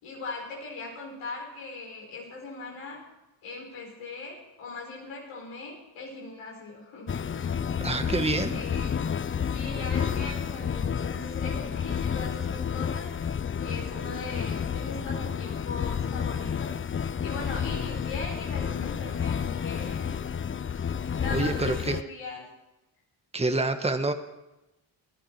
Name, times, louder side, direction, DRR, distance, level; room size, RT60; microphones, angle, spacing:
voice 1, 0.0-3.0 3.4-7.6 8.5-9.0 9.4-13.1 13.6-16.8 17.2-20.2 21.2-22.5, left 3 dB, 90° left, -2 dB, 4.7 m, -39 dB
sound 1, 7.1-22.0, left 7 dB, 25° left, 0.5 m, -30 dB
voice 2, 7.8-8.6 21.3-22.0 23.3-24.1, right 2 dB, 10° right, 7 dB, 1.3 m, -27 dB
20.0 x 10.5 x 4.5 m, 0.97 s
supercardioid pair, 50°, 50 cm